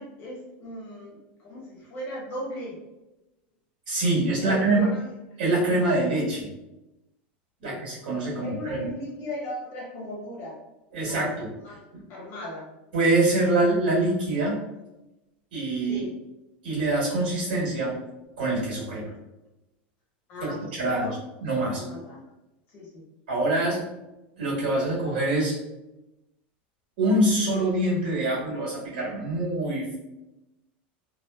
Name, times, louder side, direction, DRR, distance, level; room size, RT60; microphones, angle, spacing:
voice 1, 0.0-2.8 4.4-5.0 7.6-7.8 8.3-10.5 10.9-11.2 11.6-11.8 12.1-12.7 15.9-16.1 20.3-21.2 21.6-22.2 22.7-23.0, left 1 dB, 45° left, -4 dB, 1.3 m, -37 dB
voice 2, 3.9-4.9 5.4-6.5 7.6-8.9 10.9-11.5 12.9-14.6 15.5-16.0 16.6-17.9 18.4-19.1 20.4-21.8 23.3-23.8 24.4-25.5 27.0-29.9, right 2 dB, 75° right, -5 dB, 1.2 m, -25 dB
2.5 x 2.3 x 2.2 m, 0.98 s
supercardioid pair, 130°, 6 cm